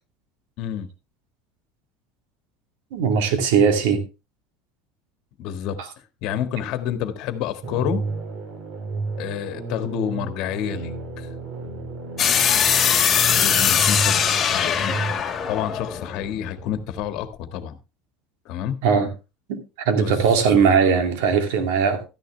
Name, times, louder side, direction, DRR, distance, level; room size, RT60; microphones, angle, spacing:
voice 1, 0.6-0.9 5.4-5.8 6.2-8.0 9.2-11.3 13.2-15.1 15.5-17.8 18.4-18.8 20.0-20.1 20.4-20.6, left 9 dB, 60° left, 1.7 m, -29 dB
voice 2, 2.9-4.0 18.8-19.1 19.5-19.6 19.9-22.0, right 6 dB, 85° right, 2.4 m, -19 dB
sound 1, 7.6-15.1, right 3 dB, 45° right, 3.5 m, -32 dB
sound 2, 12.2-17.0, left 8 dB, 25° left, 2.1 m, -21 dB
12.5 x 10.5 x 3.3 m
cardioid pair, 140°, 0 cm